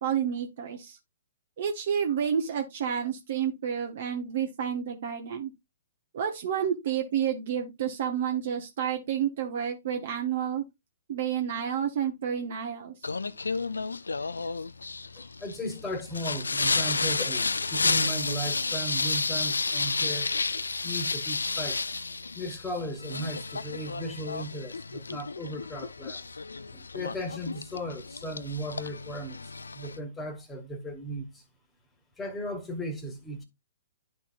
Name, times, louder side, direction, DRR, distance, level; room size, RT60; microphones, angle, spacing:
voice 1, 0.0-1.0 1.6-5.5 6.1-10.6 11.1-12.9, right 8 dB, 50° right, 1.0 m, -30 dB
Singing, 13.0-30.0, left 4 dB, 75° left, 0.4 m, -31 dB
voice 2, 15.2-20.3 20.8-21.8 22.3-26.3 26.7-31.4 32.2-33.4, equal, 10° left, 1.6 m, -36 dB
11.5 x 4.3 x 2.5 m
figure-of-eight pair, 120°, 0 cm